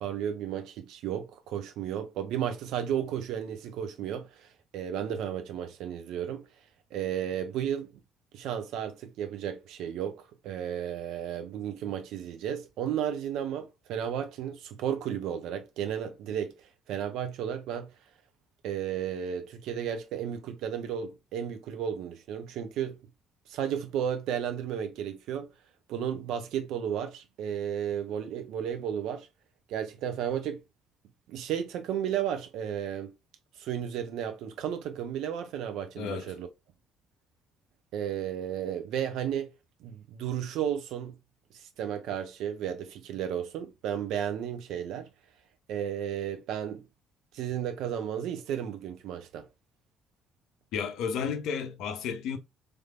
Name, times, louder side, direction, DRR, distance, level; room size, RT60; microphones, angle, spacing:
voice 1, 0.0-6.5 6.9-7.9 8.3-16.6 16.9-17.9 18.6-23.0 23.5-25.5 25.9-29.3 29.7-30.6 31.3-33.1 33.6-36.5 37.9-39.5 39.8-41.2 41.5-45.1 45.7-46.8 47.3-49.5, right 9 dB, 60° right, 0.5 m, -33 dB
voice 2, 36.0-36.3 50.7-52.4, left 6 dB, 60° left, 0.5 m, -32 dB
3.3 x 3.2 x 2.3 m
figure-of-eight pair, 45°, 0 cm